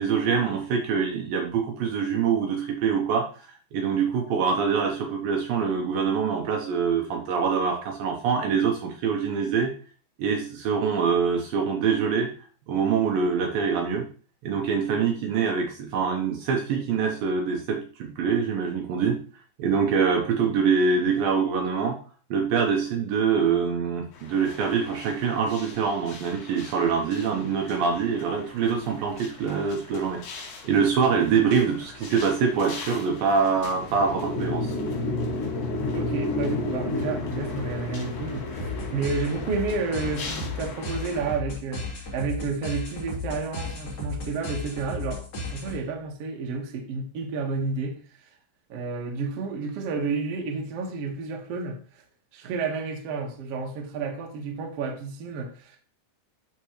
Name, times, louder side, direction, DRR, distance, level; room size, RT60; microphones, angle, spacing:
voice 1, 0.0-3.3 3.7-9.7 10.2-12.3 12.7-14.1 14.4-19.2 19.6-22.0 22.3-30.2 30.6-34.7, right 6 dB, 75° right, 2.4 m, -24 dB
sound 1, 24.1-41.4, left 2 dB, 75° left, 4.1 m, -34 dB
voice 2, 35.9-41.9 42.1-45.2 45.5-48.0 48.7-52.0 52.3-55.8, right 4 dB, 55° right, 1.7 m, -31 dB
sound 2, 38.6-46.0, left 2 dB, 40° left, 3.4 m, -35 dB
11.5 x 4.7 x 3.1 m
omnidirectional pair, 4.7 m